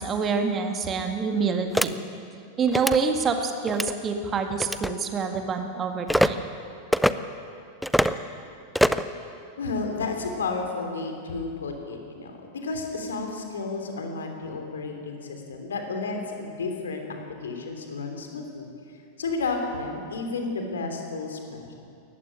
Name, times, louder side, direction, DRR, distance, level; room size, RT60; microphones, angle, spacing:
voice 1, 0.0-1.9 2.6-6.4, right 5 dB, 25° right, 5 dB, 1.9 m, -26 dB
sound 1, 1.7-1.9 2.7-3.0 3.7-3.9 4.6-4.9 6.1-6.3 6.9-7.1 7.8-8.2 8.7-9.1, equal, ahead, 0.6 m, -22 dB
voice 2, 9.6-21.7, left 3 dB, 65° left, 4 dB, 3.1 m, -32 dB
18.5 x 15.0 x 10.0 m, 2.5 s
figure-of-eight pair, 90°, 0 cm